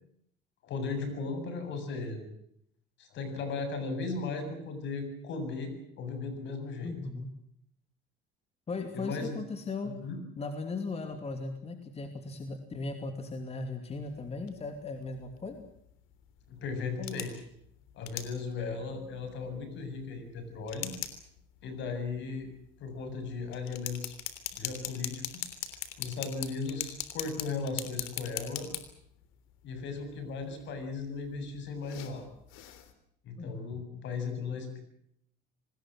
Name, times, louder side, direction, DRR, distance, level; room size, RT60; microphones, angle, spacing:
voice 1, 0.6-2.3 3.0-6.9 8.9-9.4 9.8-10.2 16.5-17.4 17.9-20.9 21.6-22.5 22.8-24.1 24.6-25.5 26.0-28.7 29.6-32.3 33.2-34.8, left 4 dB, 65° left, 8 dB, 7.7 m, -36 dB
voice 2, 6.8-7.3 8.7-9.9 10.4-15.6 33.4-33.6, left 3 dB, 30° left, 6 dB, 2.8 m, -37 dB
sound 1, 13.9-32.9, left 12 dB, 80° left, 3.4 m, -43 dB
26.0 x 20.0 x 7.7 m, 0.70 s
cardioid pair, 110°, 21 cm